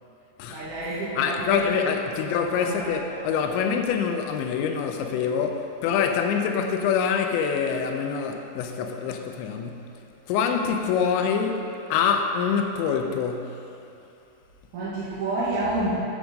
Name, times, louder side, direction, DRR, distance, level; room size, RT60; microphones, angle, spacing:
voice 1, 0.5-1.8 2.3-3.2 14.7-16.0, right 2 dB, 55° right, 2.6 m, -29 dB
voice 2, 1.2-9.9 10.3-13.6, left 6 dB, 85° left, 2.9 m, -25 dB
10.5 x 7.1 x 5.3 m
omnidirectional pair, 5.2 m